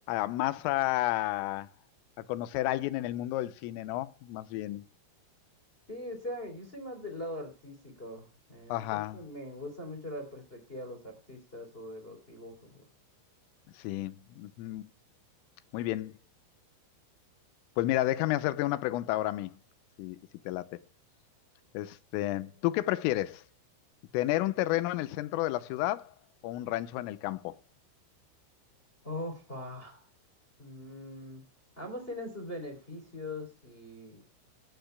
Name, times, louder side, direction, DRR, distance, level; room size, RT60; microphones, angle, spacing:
voice 1, 0.1-1.7 2.3-4.9 8.7-9.2 13.8-14.8 15.7-16.1 17.8-19.6 20.0-20.2 20.5-20.8 21.8-23.4 24.1-26.1 26.4-27.6, left 16 dB, 85° left, 3.5 m, -31 dB
voice 2, 5.9-12.9 29.0-30.1 30.6-31.4 31.8-34.2, left 1 dB, 15° left, 2.8 m, -41 dB
19.5 x 15.5 x 2.2 m
omnidirectional pair, 5.7 m